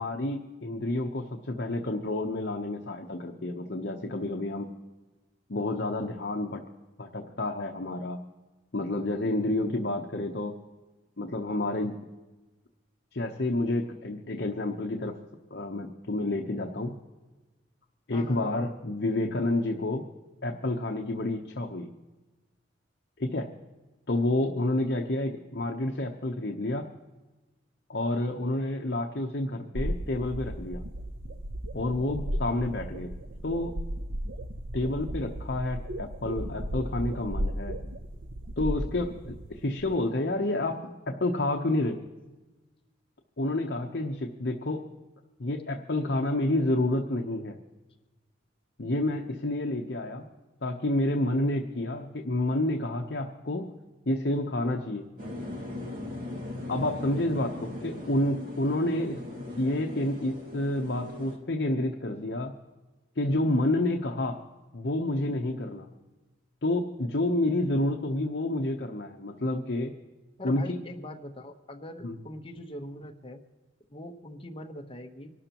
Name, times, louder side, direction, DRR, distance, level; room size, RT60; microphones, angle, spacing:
voice 1, 0.0-4.7 5.5-6.7 7.0-8.2 8.7-10.6 11.2-11.9 13.1-15.1 15.5-16.9 18.1-20.0 20.4-21.9 23.2-23.6 24.1-26.9 27.9-30.8 31.7-33.1 33.4-33.8 34.7-37.8 38.6-42.0 43.4-44.9 45.4-47.6 48.8-50.3 50.6-53.7 54.1-55.1 56.7-59.2 59.6-62.5 63.2-64.4 64.7-65.9 66.6-69.9 70.4-70.8 72.0-72.1, left 1 dB, 60° left, 2 dB, 0.9 m, -29 dB
voice 2, 18.1-18.7 70.4-73.4 73.9-75.3, left 1 dB, 30° left, 4 dB, 1.1 m, -42 dB
sound 1, 29.7-39.9, equal, 85° right, 0.7 m, -35 dB
sound 2, 55.2-61.4, left 1 dB, 50° right, 2.3 m, -39 dB
25.0 x 12.5 x 3.0 m, 1.2 s
head